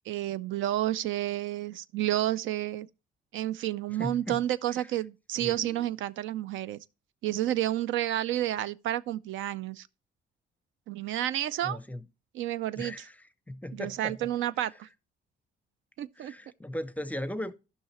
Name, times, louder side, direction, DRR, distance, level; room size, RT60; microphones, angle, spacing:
voice 1, 0.1-2.9 3.3-6.8 7.2-9.9 10.9-11.8 12.3-13.1 13.7-14.9 16.0-16.3, right 13 dB, 80° right, 0.4 m, -30 dB
voice 2, 4.0-4.4 5.4-5.9 11.6-12.0 12.8-13.0 13.5-14.1 16.2-17.5, left 1 dB, 5° left, 0.5 m, -37 dB
13.0 x 5.7 x 3.0 m
cardioid pair, 90°, 20 cm